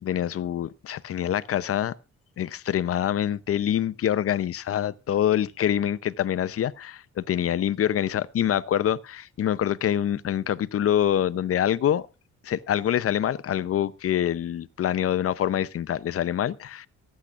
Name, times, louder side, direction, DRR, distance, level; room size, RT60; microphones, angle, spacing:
voice 1, 0.0-1.9 2.4-12.1 12.4-16.9, left 10 dB, 50° left, 0.7 m, -25 dB
24.0 x 8.6 x 2.5 m
cardioid pair, 90°, 30 cm